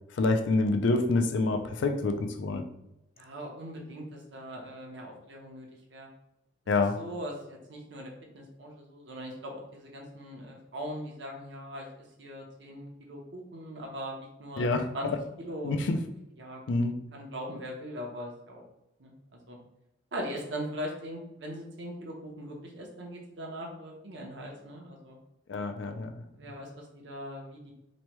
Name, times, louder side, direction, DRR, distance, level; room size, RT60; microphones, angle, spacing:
voice 1, 0.2-2.6 6.7-7.0 14.6-15.2 15.6-16.0 16.7-16.9 25.5-26.2, left 3 dB, 70° left, 6 dB, 0.4 m, -27 dB
voice 2, 3.2-5.7 5.9-6.1 7.0-11.9 12.2-14.7 14.9-15.1 15.4-15.8 16.4-16.6 17.1-18.6 19.0-19.6 20.1-25.2 26.3-27.7, equal, 70° right, 0 dB, 0.7 m, -40 dB
3.0 x 2.2 x 2.9 m, 0.86 s
head